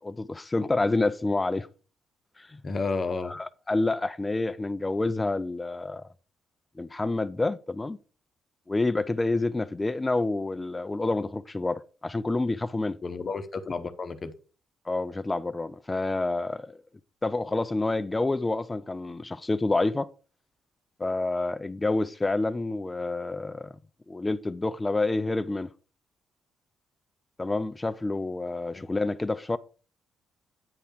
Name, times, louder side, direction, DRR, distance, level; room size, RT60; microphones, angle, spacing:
voice 1, 0.0-1.7 2.4-2.6 3.2-6.1 6.8-8.0 8.7-13.0 14.9-16.8 17.2-20.1 21.0-23.7 24.1-25.7 27.4-29.6, left 2 dB, 20° left, 0.4 m, -28 dB
voice 2, 2.6-3.4 13.0-14.3 28.7-28.9, left 4 dB, 35° left, 0.9 m, -31 dB
9.7 x 3.4 x 6.4 m
cardioid pair, 90°, 0 cm